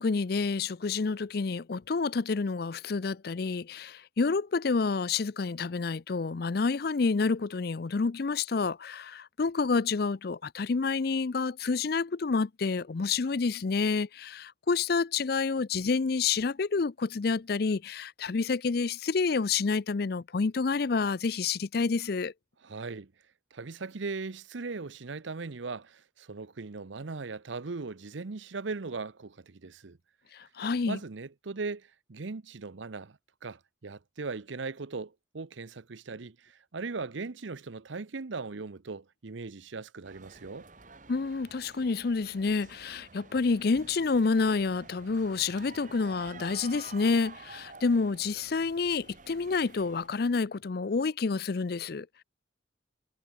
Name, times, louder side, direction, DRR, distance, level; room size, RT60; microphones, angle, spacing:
voice 1, 0.0-22.3 30.3-31.0 41.1-52.2, left 4 dB, 50° left, 0.5 m, -29 dB
voice 2, 22.6-23.1 23.5-30.0 30.9-40.7, right 4 dB, 75° right, 0.8 m, -39 dB
sound 1, 40.0-50.1, right 4 dB, 40° right, 2.3 m, -50 dB
head